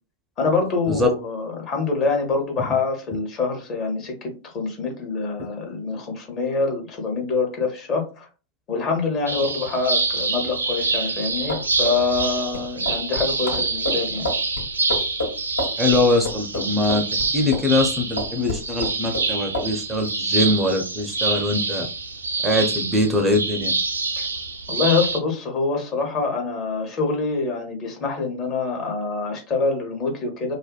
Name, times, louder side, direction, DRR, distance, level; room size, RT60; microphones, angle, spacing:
voice 1, 0.4-8.3 8.7-14.3 24.2-24.3 24.7-30.5, left 4 dB, 35° left, 1 dB, 0.8 m, -25 dB
sound 1, 9.3-25.2, right 3 dB, 75° right, 0.4 m, -26 dB
sound 2, 11.3-17.9 18.2-19.3 19.5-19.7, left 2 dB, 65° left, 0.9 m, -29 dB
voice 2, 15.8-17.0 17.3-21.9 22.4-23.7, left 2 dB, 10° right, 3 dB, 0.5 m, -22 dB
2.5 x 2.1 x 2.3 m, 0.33 s
figure-of-eight pair, 90°, 0 cm